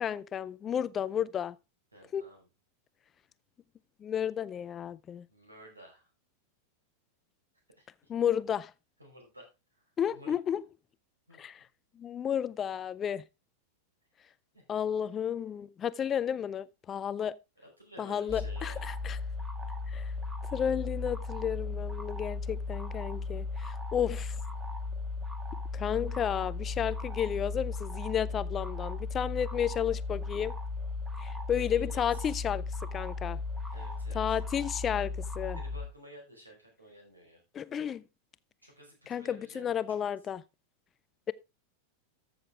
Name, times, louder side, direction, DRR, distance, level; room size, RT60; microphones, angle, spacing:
voice 1, 0.0-1.6 2.1-2.2 4.0-5.3 8.1-8.7 10.0-10.6 11.4-11.6 12.0-13.2 14.7-17.3 18.0-19.2 19.9-20.1 20.5-24.4 25.7-30.5 31.2-32.6 32.9-33.4 34.1-35.6 37.5-38.0 39.1-40.4, left 9 dB, 25° left, 0.4 m, -32 dB
voice 2, 1.9-2.5 5.3-6.1 7.8-8.1 9.0-9.8 10.1-10.3 11.3-11.4 14.5-14.6 17.6-18.9 26.8-27.0 31.5-32.4 33.7-34.4 35.5-37.4 38.6-40.0, right 1 dB, 80° right, 5.0 m, -53 dB
sound 1, 18.3-35.9, left 3 dB, 15° right, 1.7 m, -36 dB
14.0 x 6.6 x 3.5 m
figure-of-eight pair, 90°, 0 cm